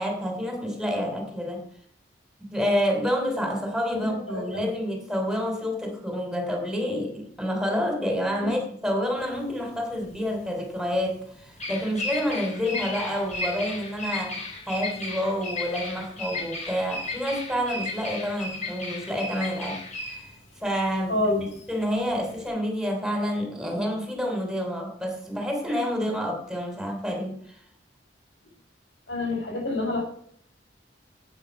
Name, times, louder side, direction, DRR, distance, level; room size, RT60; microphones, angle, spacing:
voice 1, 0.0-1.7 2.4-19.8 20.1-20.2 20.6-21.3 21.7-27.4, equal, 5° right, 3.2 m, -28 dB
voice 2, 3.9-4.6 8.4-8.5 21.1-21.5 29.1-30.0, left 2 dB, 85° left, 5.7 m, -27 dB
Bird vocalization bird call bird song, 9.2-22.5, left 2 dB, 40° left, 3.8 m, -35 dB
12.0 x 9.1 x 5.3 m
head